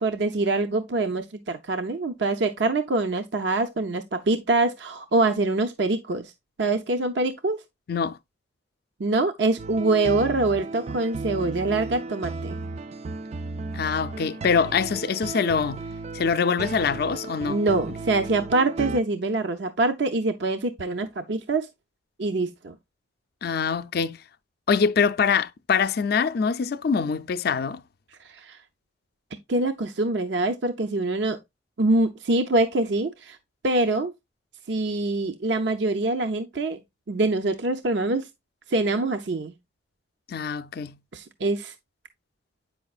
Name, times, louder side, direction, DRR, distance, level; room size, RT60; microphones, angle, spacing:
voice 1, 0.0-6.3 6.6-7.6 9.0-12.6 17.5-21.7 22.2-22.7 28.2-28.6 29.5-31.4 31.8-33.4 33.6-34.1 34.7-36.8 37.1-38.3 38.7-39.5 41.1-41.7, right 2 dB, 70° right, 0.6 m, -24 dB
voice 2, 7.9-8.2 13.7-15.8 16.1-17.6 23.4-24.2 24.7-27.8 40.3-41.0, left 6 dB, 55° left, 0.4 m, -24 dB
sound 1, 9.6-19.0, right 3 dB, 35° right, 0.3 m, -35 dB
8.5 x 5.6 x 2.4 m
head